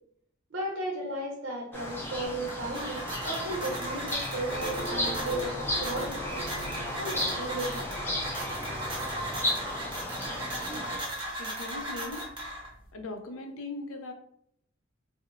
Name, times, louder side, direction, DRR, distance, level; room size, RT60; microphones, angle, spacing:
voice 1, 0.5-6.5 7.0-7.9, right 2 dB, 60° right, -3 dB, 0.6 m, -35 dB
sound 1, 1.7-11.0, left 1 dB, 10° left, 0.3 m, -34 dB
sound 2, 2.3-12.9, right 1 dB, 25° right, 0.8 m, -37 dB
sound 3, 4.5-11.3, equal, 50° left, 0.8 m, -42 dB
voice 2, 11.4-12.2 12.9-14.1, left 2 dB, 80° left, 5 dB, 0.4 m, -39 dB
2.8 x 2.0 x 2.4 m, 0.71 s
head